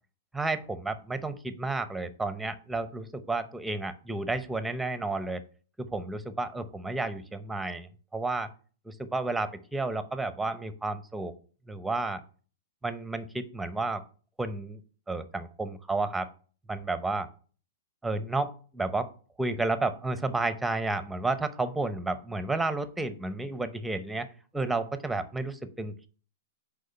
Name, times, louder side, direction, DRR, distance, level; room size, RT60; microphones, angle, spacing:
voice 1, 0.3-5.4 5.8-8.5 8.9-11.3 11.7-12.2 12.8-14.0 14.4-14.8 15.1-16.3 16.7-17.3 18.0-19.1 19.4-24.3 24.5-26.1, right 2 dB, 5° right, 11 dB, 0.8 m, -31 dB
6.5 x 5.0 x 5.3 m, 0.41 s
hypercardioid pair, 125°, 0 cm